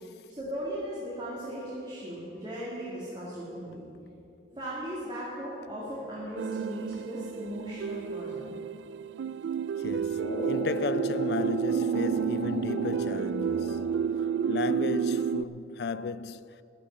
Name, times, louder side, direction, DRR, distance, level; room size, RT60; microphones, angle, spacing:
voice 1, 0.3-3.9 4.5-8.5, equal, 25° right, 2.2 m, -37 dB
sound 1, 6.4-15.4, right 7 dB, 80° right, 0.3 m, -30 dB
voice 2, 9.8-14.0 14.5-16.6, left 4 dB, 60° left, 0.4 m, -34 dB
sound 2, 10.2-14.2, left 1 dB, 75° left, 1.5 m, -38 dB
13.5 x 6.5 x 8.8 m
head